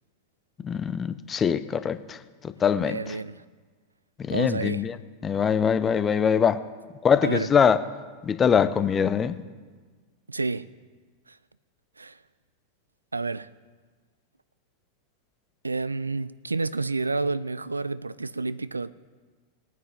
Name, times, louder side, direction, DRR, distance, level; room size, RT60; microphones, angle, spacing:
voice 1, 0.6-2.2 2.4-3.0 4.2-5.0 5.2-6.6 7.0-7.8 8.2-9.4, left 7 dB, 20° left, 0.7 m, -23 dB
voice 2, 2.8-3.4 4.3-4.9 7.2-7.5 10.3-10.7 11.3-11.4 12.0-12.2 13.1-13.5 15.6-18.9, right 3 dB, 80° right, 0.4 m, -30 dB
21.5 x 9.3 x 3.8 m
figure-of-eight pair, 90°, 0 cm